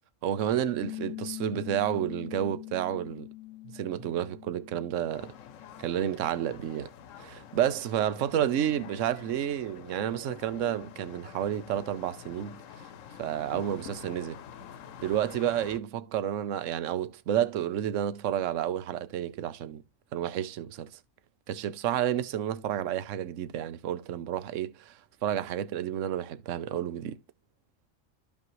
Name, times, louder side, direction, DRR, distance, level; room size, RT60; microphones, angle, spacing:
voice 1, 0.2-3.3 3.7-5.3 5.8-6.9 7.2-12.6 13.2-14.4 15.0-19.8 20.1-20.9 21.5-27.2, right 10 dB, 75° right, 1.1 m, -30 dB
Piano, 0.8-5.9, left 18 dB, 55° left, 0.8 m, -43 dB
sound 1, 5.1-15.8, left 9 dB, 80° left, 1.1 m, -47 dB
13.5 x 5.3 x 3.1 m
omnidirectional pair, 1.3 m